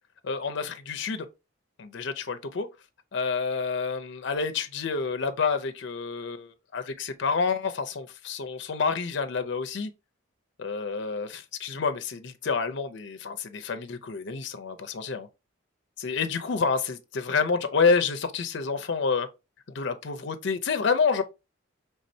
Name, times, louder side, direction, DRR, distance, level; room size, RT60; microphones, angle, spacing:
voice 1, 0.2-1.3 1.8-2.7 3.1-9.9 10.6-15.3 16.0-19.3 19.7-21.2, left 5 dB, 55° left, 0.5 m, -28 dB
4.3 x 3.4 x 2.6 m
head